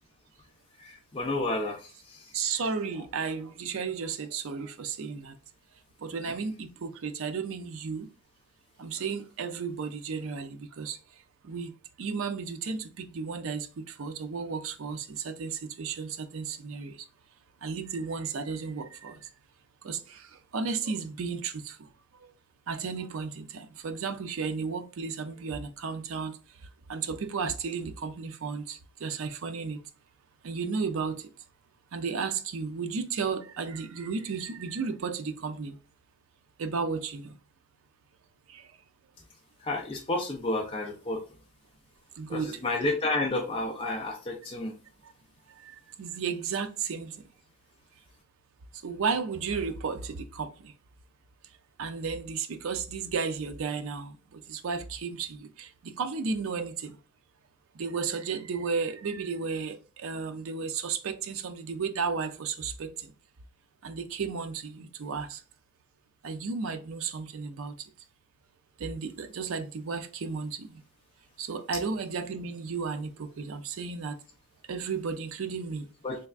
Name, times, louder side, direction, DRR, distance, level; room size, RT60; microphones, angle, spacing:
voice 1, 0.8-2.3 6.3-6.4 39.6-41.2 42.3-44.7 76.0-76.2, left 2 dB, 25° left, 0.5 m, -31 dB
voice 2, 2.3-5.3 6.0-8.1 8.8-11.0 11.4-11.7 12.0-16.9 17.6-19.2 19.8-20.3 20.5-21.8 22.2-22.3 22.7-26.3 26.9-29.8 30.4-31.2 31.9-35.8 36.6-37.3 38.5-38.6 42.2-42.6 46.0-47.2 48.8-50.7 51.8-54.1 54.5-56.9 57.8-63.1 63.8-65.4 66.2-67.7 68.8-70.7 71.4-74.2 74.7-75.9, right 5 dB, 65° right, 0.4 m, -33 dB
3.4 x 3.3 x 2.3 m
head